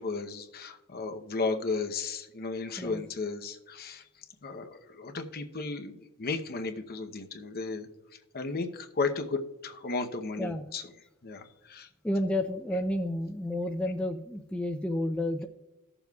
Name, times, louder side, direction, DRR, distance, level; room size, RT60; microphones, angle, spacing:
voice 1, 0.0-4.0 4.4-7.9 8.3-10.8 11.2-11.9, left 4 dB, 45° left, 7 dB, 0.8 m, -34 dB
voice 2, 10.4-10.7 12.0-15.5, left 1 dB, 5° left, 4 dB, 0.4 m, -31 dB
18.5 x 7.0 x 2.3 m, 1.0 s
head